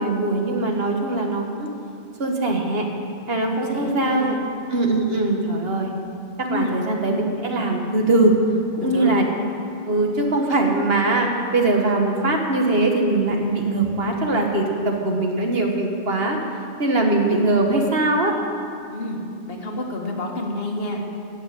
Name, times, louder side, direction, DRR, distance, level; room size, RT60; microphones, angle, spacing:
voice 1, 0.0-1.7 2.2-2.9 3.3-4.4 4.7-5.9 6.4-8.4 8.8-9.2 9.9-16.4 16.8-18.3, right 2 dB, 60° right, 1 dB, 1.6 m, -21 dB
voice 2, 3.5-4.4 6.5-6.8 8.8-9.2 18.9-19.2 19.5-21.0, left 1 dB, 55° left, 1 dB, 1.6 m, -29 dB
14.5 x 6.0 x 8.8 m, 2.5 s
omnidirectional pair, 1.2 m